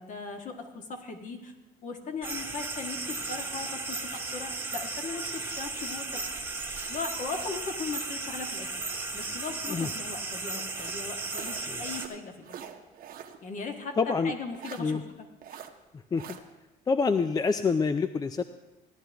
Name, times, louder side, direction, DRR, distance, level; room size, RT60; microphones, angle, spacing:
voice 1, 0.0-1.5 1.8-6.2 6.9-8.8 9.1-12.6 13.4-15.7, left 4 dB, 50° left, 4 dB, 1.6 m, -38 dB
sound 1, 2.2-12.1, right 3 dB, 10° right, 1.2 m, -35 dB
sound 2, 5.5-8.1 8.5-10.0 10.7-13.4 13.7-13.8 14.5-14.8 15.4-15.7 16.1-16.4, right 9 dB, 60° right, 1.0 m, -47 dB
voice 2, 14.0-14.3 14.8-15.0 16.1-16.4 16.9-18.4, left 5 dB, 25° left, 11 dB, 0.4 m, -26 dB
16.5 x 11.0 x 3.4 m, 1.1 s
cardioid pair, 110°, 17 cm